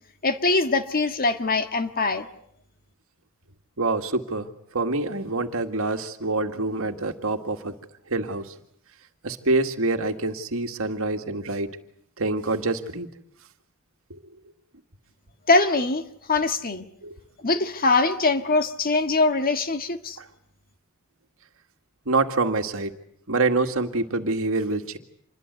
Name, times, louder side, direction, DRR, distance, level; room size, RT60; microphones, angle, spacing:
voice 1, 0.2-2.3 15.5-16.8 17.4-20.2, left 3 dB, 40° left, 9 dB, 1.7 m, -22 dB
voice 2, 3.8-4.5 4.7-7.7 8.1-8.4 9.2-11.7 12.2-13.1 17.0-17.2 22.1-22.9 23.3-25.0, right 3 dB, 70° right, 6 dB, 2.0 m, -26 dB
27.0 x 21.5 x 8.2 m, 0.68 s
head